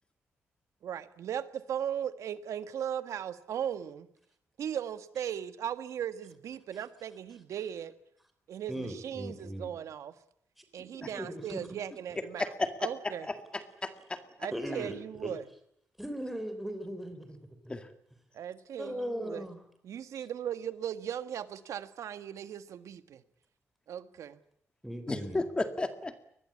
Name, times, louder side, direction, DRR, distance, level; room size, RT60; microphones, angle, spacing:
voice 1, 0.8-4.1 4.6-7.9 8.5-10.1 10.7-12.4 12.8-13.3 14.4-15.4 18.3-19.4 19.8-23.2 23.9-24.4, right 9 dB, 75° right, 11 dB, 1.6 m, -37 dB
voice 2, 8.7-9.7 10.6-10.7 10.9-11.6 14.5-15.0 15.2-15.3 16.0-17.4 17.6-17.7 18.8-19.6 24.8-25.4, equal, ahead, 7 dB, 3.5 m, -38 dB
voice 3, 12.4-14.2 17.7-17.9 25.1-26.2, left 2 dB, 20° left, 8 dB, 2.1 m, -34 dB
23.5 x 21.0 x 8.6 m, 0.73 s
wide cardioid pair, 150°, 5 cm